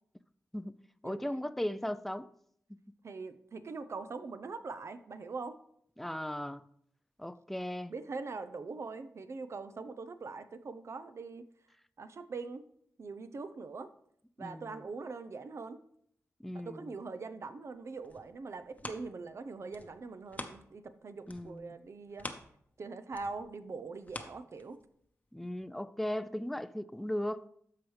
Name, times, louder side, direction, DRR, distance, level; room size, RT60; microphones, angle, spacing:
voice 1, 1.0-2.3 6.0-6.6 7.2-7.9 14.4-14.8 16.4-16.9 21.3-21.8 25.3-27.5, left 1 dB, 5° left, 0.3 m, -37 dB
voice 2, 3.0-5.6 7.9-11.5 12.0-12.6 13.0-13.9 14.4-15.8 16.5-22.3 22.8-24.8, right 4 dB, 60° right, 0.6 m, -42 dB
sound 1, 17.8-21.0 21.2-25.1 25.6-25.7, left 2 dB, 30° left, 0.8 m, -47 dB
13.5 x 4.8 x 3.2 m
cardioid pair, 70°, 5 cm